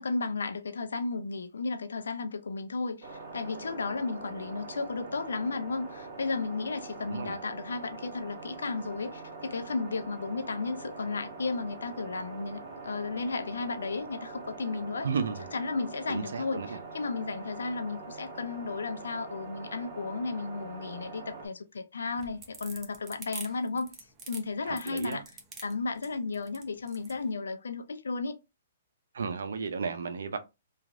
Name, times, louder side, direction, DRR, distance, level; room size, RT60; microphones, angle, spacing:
voice 1, 0.0-15.1 15.5-23.9 24.3-25.2 25.6-28.4, left 4 dB, 85° left, 0.5 m, -34 dB
sound 1, 3.0-21.5, right 3 dB, 55° right, 1.5 m, -44 dB
voice 2, 7.0-7.4 15.0-15.5 16.1-16.8 24.7-25.2 29.1-30.4, right 5 dB, 80° right, 0.6 m, -33 dB
sound 2, 22.1-27.2, right 4 dB, 20° right, 0.8 m, -45 dB
3.0 x 2.5 x 2.5 m
hypercardioid pair, 140°, 0 cm